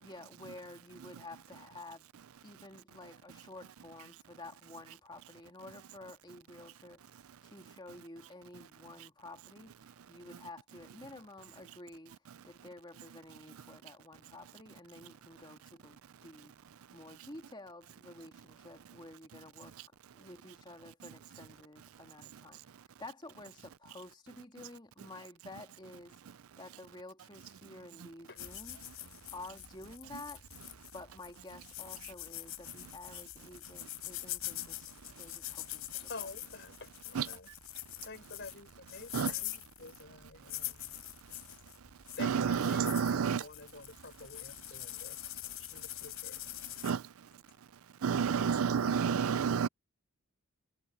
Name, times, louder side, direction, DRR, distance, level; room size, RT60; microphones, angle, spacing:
voice 1, 0.0-2.1 2.4-12.2 12.4-16.5 16.9-19.8 20.1-22.6 23.0-26.2 26.6-28.8 29.3-30.4 30.9-36.3, left 2 dB, 20° left, 2.5 m, -51 dB
sound 1, 28.4-46.9, left 16 dB, 70° left, 4.6 m, -44 dB
voice 2, 36.0-37.5 38.0-41.0 42.2-46.4, left 3 dB, 50° left, 4.0 m, -49 dB
voice 3, 42.2-43.4 46.8-47.1 48.0-49.7, right 6 dB, 70° right, 0.5 m, -29 dB
head